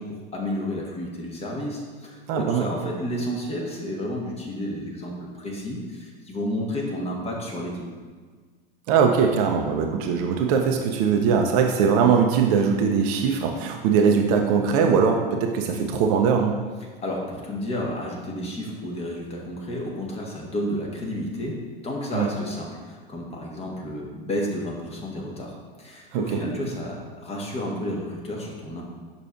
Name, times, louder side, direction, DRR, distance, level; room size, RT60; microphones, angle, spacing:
voice 1, 0.0-7.8 17.0-21.6 21.8-28.8, left 1 dB, 20° left, -1 dB, 1.3 m, -31 dB
voice 2, 2.3-2.7 8.9-16.6 22.1-22.3 26.1-26.4, right 6 dB, 45° right, 3 dB, 0.6 m, -21 dB
6.6 x 5.6 x 2.5 m, 1.5 s
hypercardioid pair, 100°, 29 cm